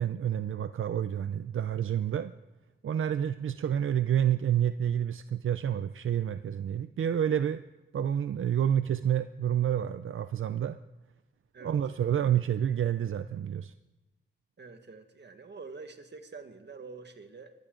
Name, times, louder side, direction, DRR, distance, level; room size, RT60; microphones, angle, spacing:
voice 1, 0.0-2.3 2.8-7.6 7.9-10.8 11.6-13.7, right 9 dB, 90° right, 11 dB, 0.5 m, -29 dB
voice 2, 14.6-17.5, right 4 dB, 60° right, 7 dB, 1.6 m, -46 dB
22.5 x 16.0 x 3.8 m, 1.1 s
wide cardioid pair, 80°, 20 cm